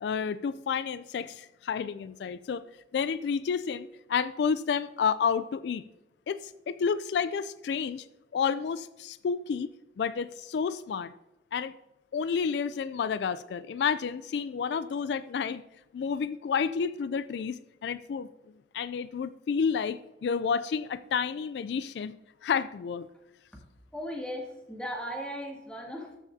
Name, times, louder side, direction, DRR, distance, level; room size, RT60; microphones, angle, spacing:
voice 1, 0.0-2.6 2.9-5.8 6.3-8.1 8.3-9.7 10.0-11.1 11.5-11.7 12.1-15.6 15.9-18.3 18.7-22.2 22.4-23.1, left 6 dB, 70° left, 14 dB, 0.3 m, -30 dB
voice 2, 23.9-26.2, equal, 5° left, -2 dB, 2.0 m, -37 dB
13.5 x 7.3 x 2.7 m, 0.98 s
head